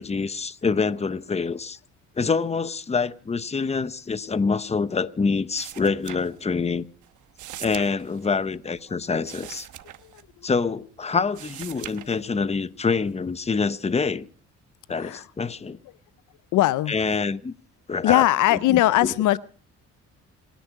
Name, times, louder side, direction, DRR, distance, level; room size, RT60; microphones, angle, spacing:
voice 1, 0.0-1.8 2.2-6.8 7.6-9.7 10.4-14.3 14.9-15.8 16.9-17.5 17.9-18.2 18.5-19.1, left 4 dB, 20° left, 0.9 m, -26 dB
sound 1, 5.6-6.8 7.0-10.8 11.1-12.6 13.1-13.6, right 13 dB, 80° right, 1.1 m, -42 dB
voice 2, 14.9-15.3 16.5-17.0 18.0-19.4, left 15 dB, 85° left, 0.7 m, -20 dB
27.5 x 10.5 x 4.7 m
cardioid pair, 90°, 30 cm